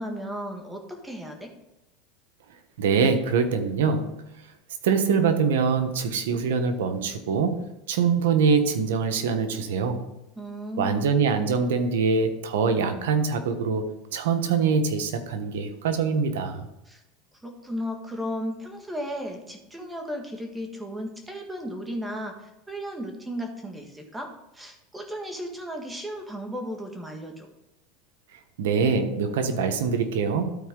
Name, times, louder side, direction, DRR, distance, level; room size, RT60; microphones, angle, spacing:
voice 1, 0.0-1.5 10.4-11.0 16.9-17.0 17.4-27.5, equal, 10° right, 3 dB, 1.7 m, -35 dB
voice 2, 2.8-4.2 4.8-7.6 7.9-10.0 10.8-16.7 28.6-30.6, right 5 dB, 85° right, 7 dB, 1.1 m, -24 dB
13.0 x 4.5 x 3.8 m, 0.93 s
supercardioid pair, 120°, 0 cm